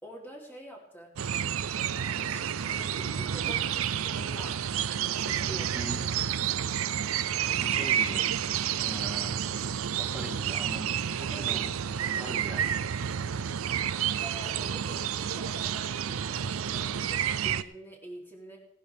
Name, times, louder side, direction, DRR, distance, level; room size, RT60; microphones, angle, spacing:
voice 1, 0.0-1.2 2.1-4.8 5.2-5.9 11.3-11.6 14.2-18.6, equal, 10° left, -2 dB, 3.2 m, -46 dB
sound 1, 1.2-17.6, right 9 dB, 85° right, 0.5 m, -30 dB
voice 2, 5.7-6.1 7.6-8.3 8.8-9.4 9.9-11.7 12.0-12.7, right 1 dB, 5° right, 1 dB, 1.9 m, -41 dB
18.5 x 11.0 x 3.5 m, 0.73 s
head